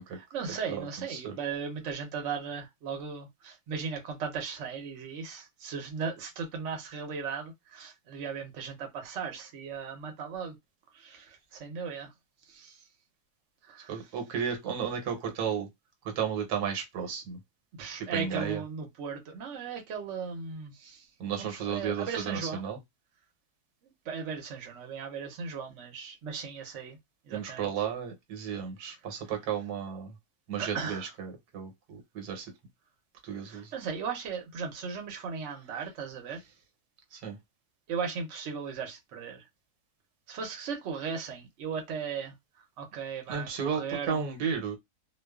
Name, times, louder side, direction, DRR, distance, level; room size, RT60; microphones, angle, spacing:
voice 1, 0.1-10.5 10.9-12.1 12.5-12.7 13.7-14.0 17.8-21.0 21.4-22.7 24.1-27.0 27.3-27.7 30.6-31.1 33.5-36.4 37.9-39.4 40.3-42.3 42.8-44.2, right 6 dB, 60° right, 0.9 m, -37 dB
voice 2, 0.7-1.3 13.9-15.7 16.2-17.4 18.1-18.6 21.2-22.8 27.3-30.1 30.5-32.4 33.2-33.7 37.2-37.4 43.3-44.8, right 7 dB, 85° right, 1.2 m, -33 dB
2.4 x 2.3 x 2.3 m
omnidirectional pair, 1.6 m